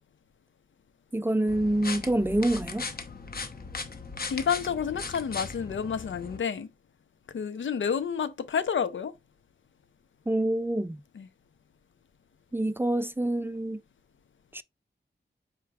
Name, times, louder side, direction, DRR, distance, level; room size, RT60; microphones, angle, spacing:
voice 1, 1.1-2.9 10.3-11.0 12.5-13.8 14.5-14.6, right 1 dB, 10° right, 0.3 m, -26 dB
sound 1, 1.5-6.4, left 4 dB, 50° left, 1.0 m, -38 dB
voice 2, 4.3-6.7 7.3-9.1 11.1-11.3, left 7 dB, 85° left, 0.7 m, -29 dB
5.1 x 4.5 x 2.4 m
wide cardioid pair, 80°, 19 cm